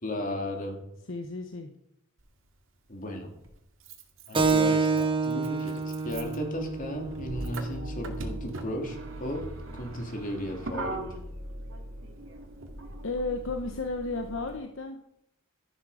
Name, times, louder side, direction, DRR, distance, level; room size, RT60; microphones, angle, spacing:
voice 1, 0.0-0.8 2.9-3.3 4.3-5.7 6.0-9.4 9.7-11.0, left 1 dB, 40° left, 3 dB, 2.8 m, -35 dB
voice 2, 1.1-1.7 13.0-15.0, left 3 dB, 65° left, 5 dB, 1.0 m, -33 dB
Motor vehicle (road), 2.2-2.3 3.4-14.6, right 1 dB, 65° right, 2.2 m, -40 dB
Keyboard (musical), 4.3-9.4, right 4 dB, 25° right, 1.1 m, -29 dB
13.5 x 11.5 x 5.0 m, 0.79 s
head